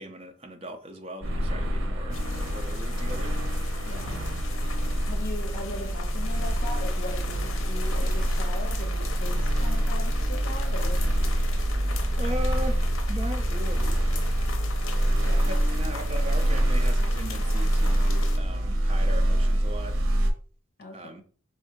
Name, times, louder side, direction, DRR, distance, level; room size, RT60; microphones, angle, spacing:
voice 1, 0.0-3.4 12.2-14.0 15.2-20.0 20.9-21.2, equal, 30° right, 0.6 m, -38 dB
sound 1, 1.2-20.3, right 1 dB, 90° right, 0.8 m, -25 dB
sound 2, 2.1-18.4, left 5 dB, 80° left, 0.6 m, -40 dB
voice 2, 3.8-4.2 5.1-11.0 15.2-15.5 20.8-21.2, left 2 dB, 45° left, 0.9 m, -39 dB
3.5 x 2.7 x 4.4 m
head